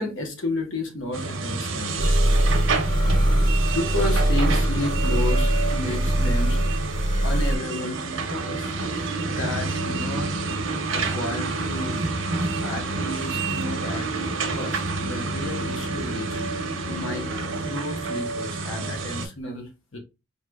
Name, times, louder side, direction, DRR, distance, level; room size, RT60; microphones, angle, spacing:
voice 1, 0.0-2.3 3.7-6.6 7.2-8.8 9.2-10.3 10.9-12.0 12.6-14.1 14.5-16.4 16.9-17.3 17.6-20.0, left 1 dB, 75° left, 1.1 m, -32 dB
sound 1, 1.1-19.3, right 3 dB, 80° right, 0.8 m, -28 dB
sound 2, 2.0-7.6, right 1 dB, 20° left, 0.5 m, -22 dB
sound 3, 3.4-4.3 4.9-5.7 6.2-7.0 7.4-7.9 8.4-8.5 8.9-9.4 9.7-10.2 10.4-10.7 11.0-11.3 11.7-12.1 12.4-12.6 13.1-13.7, right 13 dB, 60° right, 0.4 m, -38 dB
4.8 x 2.8 x 2.3 m
head